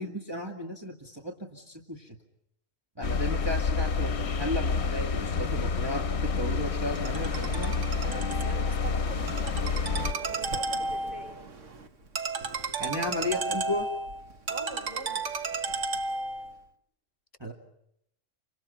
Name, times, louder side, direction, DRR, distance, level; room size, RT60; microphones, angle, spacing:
voice 1, 0.0-2.2 3.0-7.7 12.8-13.9 17.4-17.5, left 1 dB, 20° right, 1 dB, 2.2 m, -34 dB
sound 1, 3.0-10.1, left 5 dB, 60° left, 1.4 m, -29 dB
Ringtone, 7.0-16.5, right 3 dB, 70° right, 1.8 m, -34 dB
voice 2, 8.0-11.4 14.5-15.2, right 1 dB, 35° left, 4 dB, 5.7 m, -43 dB
30.0 x 25.5 x 5.6 m, 0.77 s
omnidirectional pair, 1.3 m